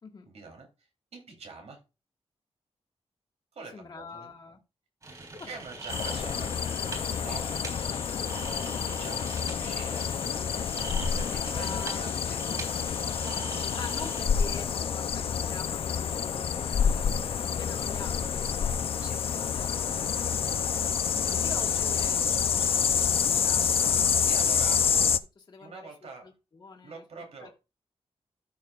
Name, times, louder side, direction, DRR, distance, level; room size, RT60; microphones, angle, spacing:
voice 1, 0.2-0.7 1.1-1.8 3.5-4.3 5.5-7.5 8.7-10.0 10.3-10.5 11.1-12.4 19.0-19.2 21.9-22.0 24.2-24.8 25.6-26.3 26.8-27.5, right 4 dB, 85° right, 2 dB, 3.2 m, -45 dB
voice 2, 3.7-4.6 5.4-5.6 9.0-9.1 11.5-12.0 13.8-17.1 17.4-18.5 19.6-20.8 21.4-24.1 24.4-24.9 25.3-27.0 27.4-27.5, left 4 dB, 45° left, 0 dB, 1.7 m, -45 dB
sound 1, 5.0-14.2, right 3 dB, 35° right, 3.9 m, -42 dB
sound 2, 5.9-25.2, left 7 dB, 60° left, 0.5 m, -28 dB
13.5 x 6.3 x 2.4 m, 0.28 s
wide cardioid pair, 175°, 11 cm